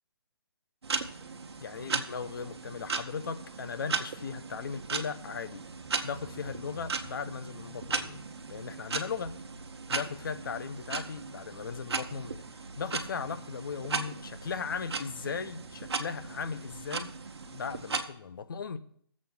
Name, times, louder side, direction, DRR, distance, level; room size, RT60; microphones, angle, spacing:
sound 1, 0.8-18.0, right 4 dB, 80° right, 1.1 m, -37 dB
voice 1, 1.6-5.6 6.0-8.2 8.5-9.4 9.9-12.4 12.8-17.2 17.5-18.8, left 6 dB, 55° left, 0.6 m, -37 dB
22.0 x 7.4 x 2.3 m
hypercardioid pair, 170°, 13 cm